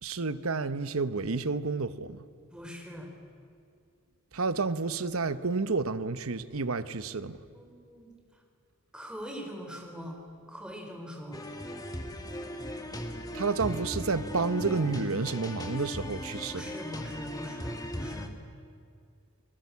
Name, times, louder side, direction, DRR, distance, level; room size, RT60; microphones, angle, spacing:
voice 1, 0.0-2.2 4.3-7.4 13.3-16.6, right 4 dB, 70° right, 1.0 m, -30 dB
voice 2, 2.5-3.1 7.5-8.4 8.9-10.2 10.5-11.4 16.5-18.3, equal, 5° right, 3.9 m, -42 dB
sound 1, 11.3-18.3, left 1 dB, 15° left, 1.7 m, -38 dB
30.0 x 19.5 x 8.4 m
head